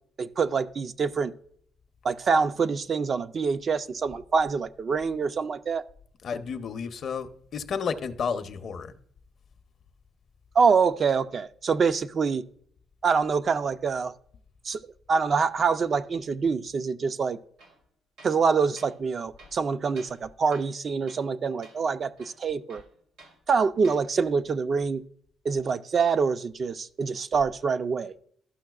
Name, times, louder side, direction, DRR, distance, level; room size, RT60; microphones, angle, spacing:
voice 1, 0.2-1.3 2.0-5.8 10.5-12.4 13.0-14.1 14.6-17.4 18.2-22.8 23.5-25.0 25.4-28.1, right 5 dB, 45° right, 0.4 m, -25 dB
voice 2, 6.2-7.3 7.5-9.0, left 6 dB, 55° left, 0.6 m, -31 dB
Tools, 17.6-17.8 18.2-18.4 18.8-18.9 19.4-20.2 20.5-20.8 21.1-21.3 21.6-21.8 22.2-23.4 23.8-24.0, right 2 dB, 85° right, 2.4 m, -52 dB
12.5 x 5.8 x 2.3 m
cardioid pair, 80°, 0 cm